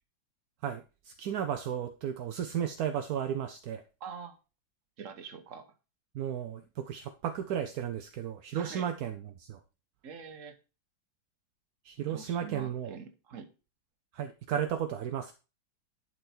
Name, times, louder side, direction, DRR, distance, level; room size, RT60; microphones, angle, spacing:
voice 1, 0.6-3.8 6.1-9.6 11.8-13.0 14.1-15.3, right 9 dB, 70° right, 0.9 m, -34 dB
voice 2, 4.0-4.4 5.0-5.7 8.5-8.9 10.0-10.6 12.1-13.5, right 6 dB, 50° right, 1.3 m, -44 dB
11.0 x 4.7 x 4.3 m
omnidirectional pair, 2.1 m